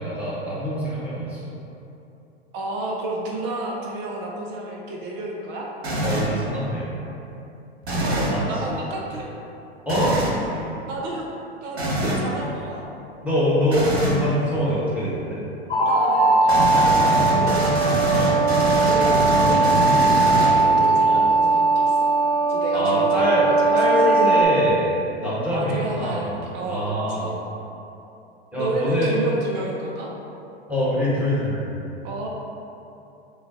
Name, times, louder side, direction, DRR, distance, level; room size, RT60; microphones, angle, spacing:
voice 1, 0.0-1.5 6.0-7.0 8.2-8.8 9.8-10.7 12.0-12.2 13.2-15.4 18.1-18.4 21.0-21.2 22.7-26.3 26.7-27.3 28.5-29.2 30.7-31.7, equal, 5° right, -9 dB, 1.3 m, -24 dB
voice 2, 2.5-5.7 8.0-9.3 10.9-11.3 11.6-12.9 15.8-17.6 18.8-22.1 22.5-23.8 25.5-27.4 28.6-30.1 32.0-32.3, right 2 dB, 35° right, -1 dB, 0.5 m, -31 dB
sound 1, 5.8-6.4 7.8-8.4 9.9-10.4 11.8-12.3 13.7-14.2 16.5-20.9, right 1 dB, 80° right, 0.9 m, -24 dB
sound 2, 15.7-24.4, right 3 dB, 10° left, 1.0 m, -19 dB
6.5 x 2.2 x 2.8 m, 2.8 s
figure-of-eight pair, 90°, 31 cm